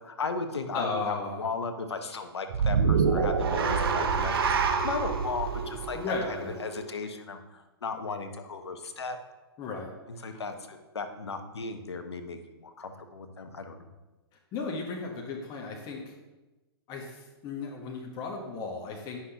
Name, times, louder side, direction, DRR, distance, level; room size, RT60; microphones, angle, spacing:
voice 1, 0.0-6.1 6.4-9.2 10.1-13.9, left 4 dB, 85° left, 7 dB, 0.8 m, -36 dB
voice 2, 0.7-1.4 5.9-6.6 9.6-9.9 10.2-10.4 14.5-16.1 16.9-19.2, left 3 dB, 30° left, 0 dB, 1.1 m, -35 dB
sound 1, 2.5-6.9, right 5 dB, 65° right, 0.8 m, -27 dB
9.5 x 5.8 x 2.9 m, 1.1 s
hypercardioid pair, 125°, 13 cm